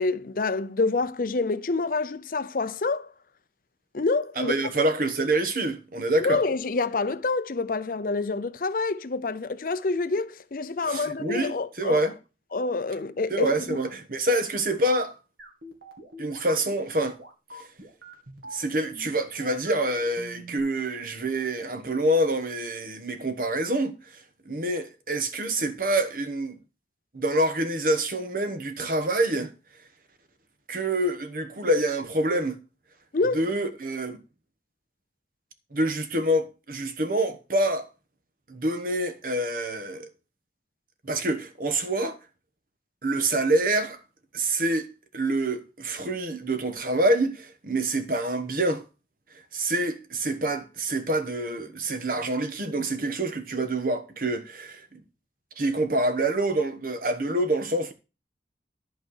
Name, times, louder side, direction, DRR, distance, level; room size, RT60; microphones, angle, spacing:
voice 1, 0.0-3.1 3.9-4.5 6.2-12.0 12.5-13.8 33.1-33.4, left 3 dB, 50° left, 0.6 m, -27 dB
voice 2, 4.4-6.4 10.8-12.1 13.3-15.1 16.2-17.2 18.5-23.9 24.4-26.5 27.1-29.5 30.7-32.6 33.3-34.2 35.7-37.9 38.5-40.1 41.0-42.2 43.0-44.0 44.3-44.9 45.1-48.8 49.5-55.0 55.6-57.9, right 1 dB, 50° right, 1.3 m, -26 dB
sound 1, 15.4-20.6, equal, 75° right, 2.5 m, -44 dB
11.5 x 4.6 x 6.4 m
head